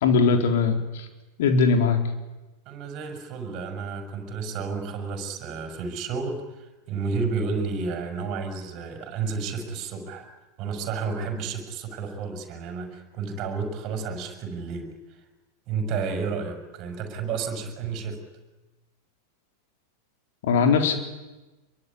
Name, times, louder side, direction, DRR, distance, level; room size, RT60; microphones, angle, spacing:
voice 1, 0.0-1.1 1.4-2.0 20.4-20.9, left 5 dB, 55° left, 5 dB, 4.1 m, -20 dB
voice 2, 2.7-10.3 10.6-15.2 15.7-18.2, right 5 dB, 40° right, 5 dB, 6.2 m, -31 dB
26.0 x 23.5 x 9.8 m, 1.1 s
figure-of-eight pair, 90°, 0 cm